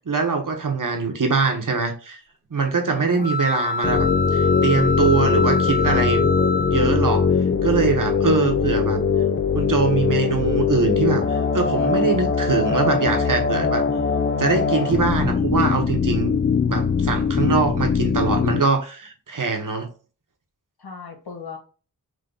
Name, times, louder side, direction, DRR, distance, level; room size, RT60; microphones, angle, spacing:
voice 1, 0.0-2.2 2.5-6.3 6.7-7.3 7.6-9.0 9.5-13.8 14.4-16.4 16.7-19.9, right 4 dB, 55° right, 1.1 m, -23 dB
voice 2, 2.9-3.3 8.3-8.4 8.7-8.9 15.2-15.7 20.8-21.6, left 5 dB, 85° left, 1.3 m, -39 dB
sound 1, 3.2-7.3, left 3 dB, 5° left, 1.6 m, -26 dB
sound 2, 3.8-18.6, left 5 dB, 35° left, 0.4 m, -21 dB
3.8 x 2.5 x 3.9 m
wide cardioid pair, 55°, 37 cm